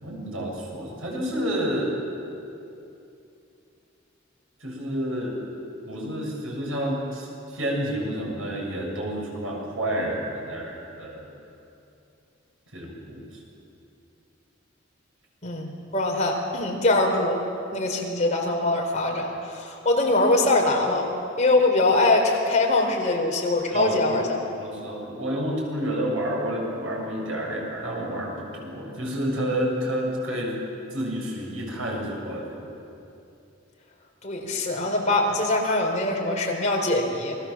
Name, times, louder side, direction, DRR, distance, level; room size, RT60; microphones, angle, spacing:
voice 1, 0.0-2.0 4.6-5.4 5.9-11.3 12.7-13.4 23.7-24.3 24.6-30.5 30.9-32.8, equal, 85° right, -2 dB, 7.6 m, -29 dB
voice 2, 15.4-17.4 17.7-21.1 21.4-24.2 34.2-37.4, left 2 dB, 35° left, 0 dB, 4.2 m, -23 dB
28.0 x 20.5 x 7.4 m, 2.7 s
head